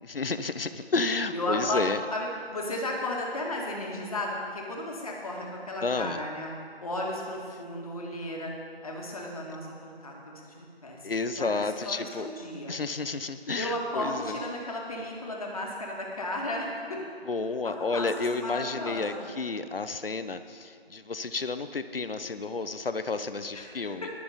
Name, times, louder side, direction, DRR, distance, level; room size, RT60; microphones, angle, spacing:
voice 1, 0.0-2.0 5.8-6.2 11.0-12.3 12.7-14.3 17.3-24.1, left 3 dB, 65° left, 11 dB, 0.8 m, -31 dB
voice 2, 1.3-6.5 6.8-8.5 8.8-12.7 13.5-17.0 17.6-18.1 18.3-19.3 23.5-24.1, left 1 dB, 35° left, -1 dB, 2.1 m, -34 dB
20.5 x 7.0 x 5.2 m, 2.3 s
figure-of-eight pair, 165°, 31 cm